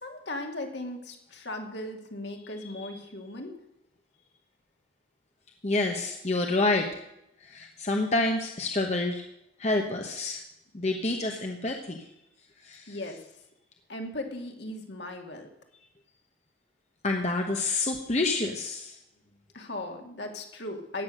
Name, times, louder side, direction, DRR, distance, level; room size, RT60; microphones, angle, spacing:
voice 1, 0.0-3.6 12.9-13.3 13.9-15.5 19.5-21.0, left 1 dB, 65° left, 3 dB, 2.3 m, -37 dB
voice 2, 5.6-6.9 7.4-9.2 9.6-10.4 10.7-12.1 12.6-13.0 17.0-19.0, left 2 dB, 35° left, 3 dB, 1.1 m, -28 dB
15.5 x 9.6 x 6.5 m, 0.84 s
head